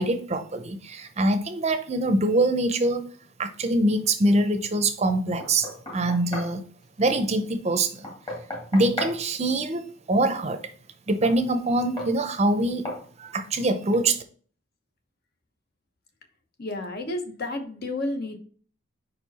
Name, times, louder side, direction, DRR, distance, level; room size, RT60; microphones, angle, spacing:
voice 1, 0.0-3.1 3.4-6.6 7.0-8.1 8.7-10.6 11.1-12.8 13.2-14.2, right 2 dB, 35° right, 0.6 m, -24 dB
Knock, 5.4-6.6 8.0-9.2 11.2-11.4 12.0-12.2 12.8-13.1, left 1 dB, 25° left, 1.6 m, -34 dB
voice 2, 16.6-18.4, left 2 dB, 50° left, 1.0 m, -31 dB
5.2 x 4.6 x 4.0 m
head